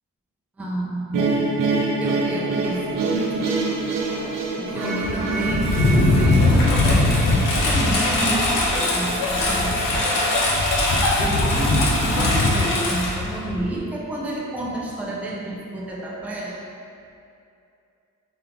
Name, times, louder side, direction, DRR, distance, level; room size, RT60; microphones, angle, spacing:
voice 1, 0.6-1.4 1.7-3.6 4.6-10.3 11.2-16.6, right 1 dB, 5° right, -4 dB, 0.3 m, -29 dB
sound 1, 1.1-8.2, right 3 dB, 75° right, 0.5 m, -26 dB
sound 2, 2.6-10.4 10.7-10.8 11.4-13.1 13.3-13.4, equal, 30° right, 0.9 m, -36 dB
Engine, 5.0-13.8, left 2 dB, 75° left, 0.7 m, -20 dB
3.9 x 2.8 x 3.3 m, 2.5 s
wide cardioid pair, 170°, 33 cm